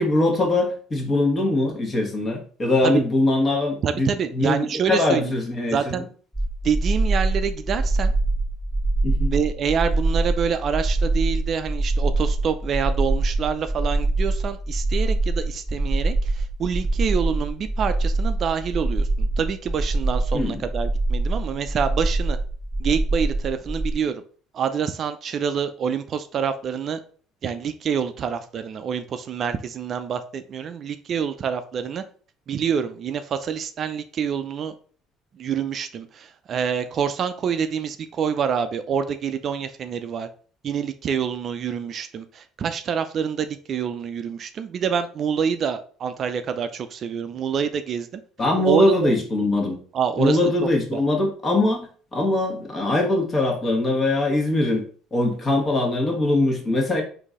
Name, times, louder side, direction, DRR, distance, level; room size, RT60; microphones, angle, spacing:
voice 1, 0.0-6.0 9.0-9.3 20.3-20.6 48.4-49.8 50.2-54.8 55.1-57.0, left 2 dB, 30° left, 1.4 m, -22 dB
voice 2, 3.8-5.3 5.7-6.0 6.6-8.1 9.3-22.4 22.8-24.2 24.5-27.0 27.4-32.0 32.5-34.7 35.3-40.3 40.6-48.2 48.6-49.1 49.9-51.0, right 7 dB, 50° right, 0.4 m, -26 dB
sound 1, 6.3-23.9, right 2 dB, 10° left, 0.8 m, -24 dB
3.8 x 2.7 x 3.6 m
supercardioid pair, 80°, 0 cm